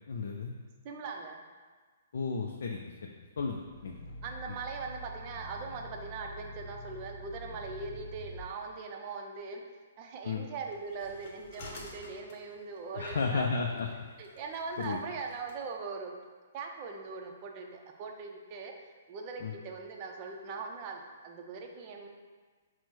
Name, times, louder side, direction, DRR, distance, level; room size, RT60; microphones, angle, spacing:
voice 1, 0.1-0.5 2.1-4.0 10.2-10.4 12.9-13.9 14.8-15.0 19.4-19.5, left 4 dB, 65° left, 1 dB, 0.3 m, -33 dB
voice 2, 0.8-1.4 4.2-9.6 10.0-13.5 14.2-16.1 16.5-18.7 19.1-22.1, right 4 dB, 35° right, 2 dB, 0.5 m, -41 dB
Growling, 3.5-8.5, equal, ahead, 0.8 m, -46 dB
sound 1, 10.7-15.6, left 2 dB, 50° left, 0.8 m, -52 dB
4.4 x 2.0 x 4.3 m, 1.5 s
figure-of-eight pair, 125°, 0 cm